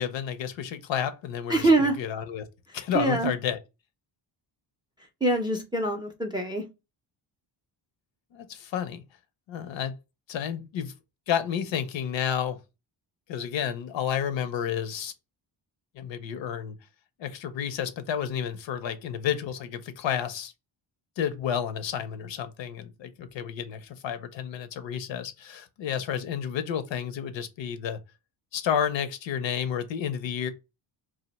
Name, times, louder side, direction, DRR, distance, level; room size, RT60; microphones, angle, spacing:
voice 1, 0.0-2.5 2.7-3.6 8.3-9.0 9.5-9.9 10.3-10.9 11.3-12.6 13.3-15.1 15.9-16.8 17.2-20.5 21.2-28.0 28.5-30.5, left 8 dB, 70° left, 0.6 m, -31 dB
voice 2, 1.5-2.0 2.9-3.3 5.2-6.6, right 2 dB, 10° right, 0.3 m, -24 dB
2.5 x 2.1 x 3.9 m
cardioid pair, 130°, 47 cm